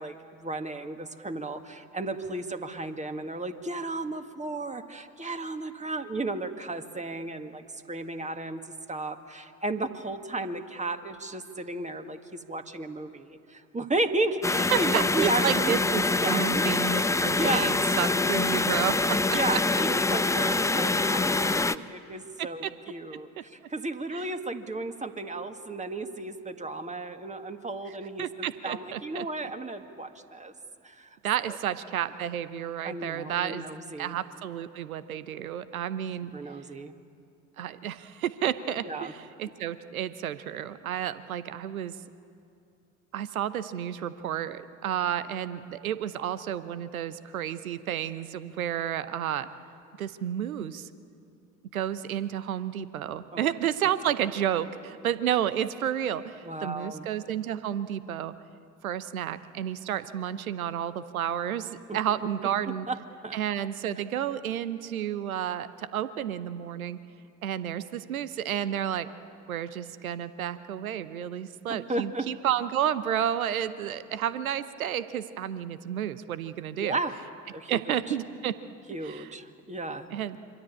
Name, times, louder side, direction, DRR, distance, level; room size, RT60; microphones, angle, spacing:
voice 1, 0.0-8.6 8.9-15.7 16.2-16.6 17.4-17.7 19.3-30.5 30.8-31.2 32.8-34.2 36.3-36.9 38.8-39.1 53.3-53.5 56.4-57.1 61.9-62.0 62.7-63.0 63.2-63.4 71.7-72.3 76.8-77.2 77.5-78.1 78.9-80.1, right 2 dB, 15° right, 7 dB, 2.0 m, -34 dB
sound 1, 14.4-21.8, left 3 dB, 5° left, 0.7 m, -25 dB
voice 2, 14.7-19.2 22.4-22.7 23.4-23.5 24.1-24.3 28.2-29.3 31.2-33.6 34.0-36.3 37.6-41.9 43.1-49.5 50.0-50.9 51.7-58.3 58.8-62.8 63.3-67.0 67.4-69.1 69.5-77.0 77.7-78.5 79.0-79.3 80.1-80.4, right 10 dB, 80° right, 14 dB, 0.9 m, -31 dB
26.5 x 24.5 x 8.6 m, 2.5 s
figure-of-eight pair, 55°, 41 cm